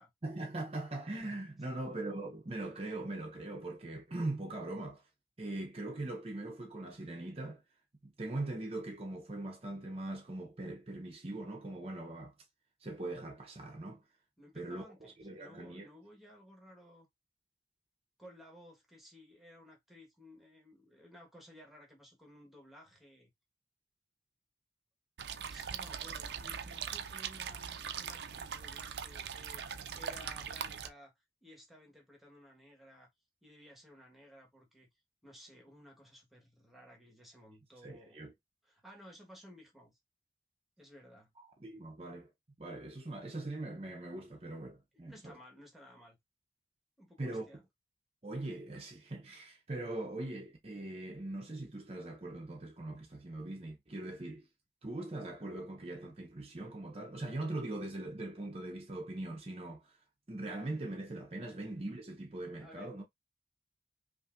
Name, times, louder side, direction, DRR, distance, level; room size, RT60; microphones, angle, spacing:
voice 1, 0.2-5.0 5.4-7.6 8.2-12.3 12.8-14.0 14.5-15.9 37.8-38.3 41.6-42.3 42.6-45.3 47.2-47.5 48.2-54.5 54.8-60.0 60.3-63.0, right 2 dB, 35° right, 0.7 m, -41 dB
voice 2, 14.4-17.1 18.2-23.3 25.5-29.6 29.9-31.1 31.4-33.1 33.4-34.9 35.2-38.3 38.6-40.0 40.8-41.3 44.9-46.2 47.0-47.6 62.6-63.0, equal, ahead, 1.3 m, -56 dB
sound 1, 25.2-30.9, right 7 dB, 75° right, 0.5 m, -41 dB
5.4 x 2.6 x 2.5 m
head